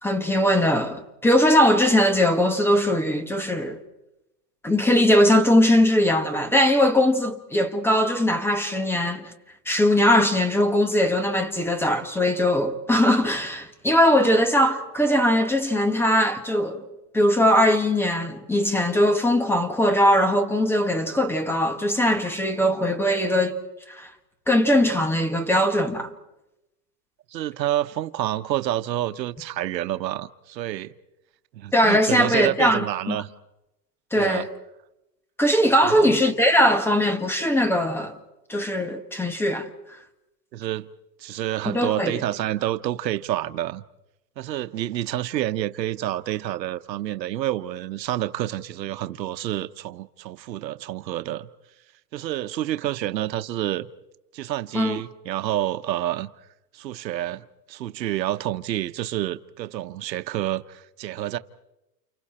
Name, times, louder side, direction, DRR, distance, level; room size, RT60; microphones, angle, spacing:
voice 1, 0.0-3.8 4.6-9.3 9.7-16.8 17.1-23.5 23.9-24.1 24.5-26.1 31.7-33.2 34.1-34.5 35.4-38.1 38.5-39.7 41.6-42.2 54.7-55.0, equal, 5° left, 1.3 m, -20 dB
voice 2, 27.3-30.9 31.5-33.3 34.1-34.5 35.8-36.2 40.5-40.9 41.2-43.8 44.4-51.5 52.1-53.9 54.3-56.3 56.7-61.4, right 13 dB, 80° right, 1.1 m, -28 dB
30.0 x 29.0 x 4.3 m
hypercardioid pair, 145°, 50 cm